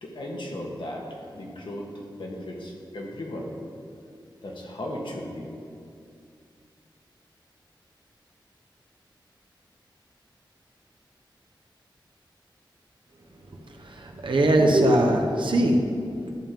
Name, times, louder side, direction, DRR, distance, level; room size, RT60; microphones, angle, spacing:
voice 1, 0.0-3.5 4.4-5.5, left 1 dB, 70° left, -1 dB, 1.4 m, -36 dB
voice 2, 13.8-15.8, right 1 dB, 75° right, 2 dB, 1.0 m, -21 dB
11.0 x 3.7 x 7.4 m, 2.4 s
wide cardioid pair, 105°, 8 cm